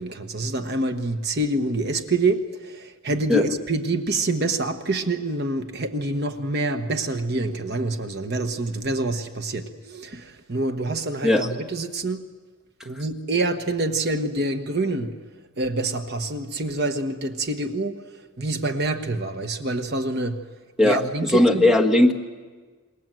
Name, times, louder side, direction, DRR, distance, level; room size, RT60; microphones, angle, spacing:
voice 1, 0.0-12.2 12.8-15.1 15.6-18.0 18.4-20.4 20.8-21.7, right 2 dB, 50° right, 1.2 m, -26 dB
voice 2, 20.8-22.1, left 1 dB, ahead, 1.3 m, -18 dB
27.5 x 21.5 x 7.7 m
head